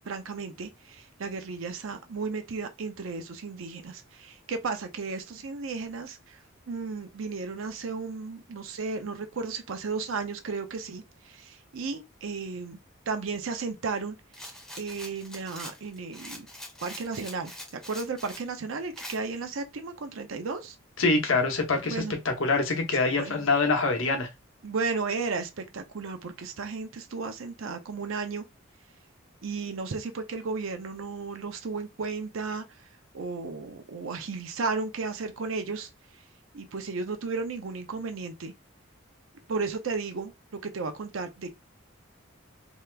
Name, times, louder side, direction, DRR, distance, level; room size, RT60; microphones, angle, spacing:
voice 1, 0.0-6.4 6.7-12.8 13.1-14.2 14.8-16.5 16.8-17.5 17.9-20.8 21.8-22.2 22.9-23.5 24.6-28.4 29.4-32.6 33.1-35.9 36.5-38.5 39.5-40.3 40.6-41.5, right 4 dB, 75° right, 0.5 m, -34 dB
Rattle, 14.3-18.5 19.0-19.2, left 1 dB, 5° left, 0.6 m, -43 dB
voice 2, 21.0-24.3, left 3 dB, 75° left, 0.9 m, -25 dB
2.8 x 2.3 x 3.3 m
head